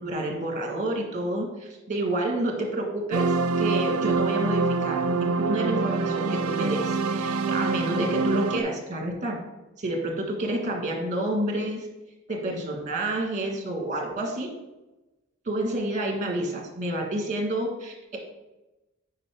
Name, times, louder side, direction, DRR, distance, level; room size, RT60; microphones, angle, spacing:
voice 1, 0.0-9.4 9.8-11.9 12.3-14.5 15.4-18.2, right 1 dB, 35° right, 2 dB, 1.5 m, -29 dB
sound 1, 3.1-8.6, right 4 dB, 85° right, 0.4 m, -25 dB
8.1 x 5.1 x 3.5 m, 1.0 s
head